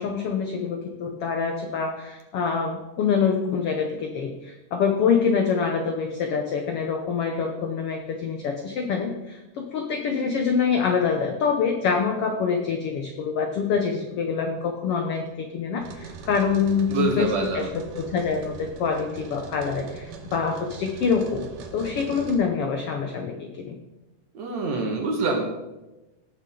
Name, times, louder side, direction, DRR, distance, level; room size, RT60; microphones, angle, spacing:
voice 1, 0.0-17.7 18.0-21.5 21.7-23.8, left 6 dB, 90° left, 4 dB, 1.3 m, -25 dB
sound 1, 15.8-22.4, right 5 dB, 75° right, 2.7 m, -41 dB
voice 2, 16.9-17.7 24.3-25.4, right 3 dB, 60° right, 2 dB, 2.7 m, -25 dB
18.0 x 6.7 x 3.8 m, 1.0 s
omnidirectional pair, 3.8 m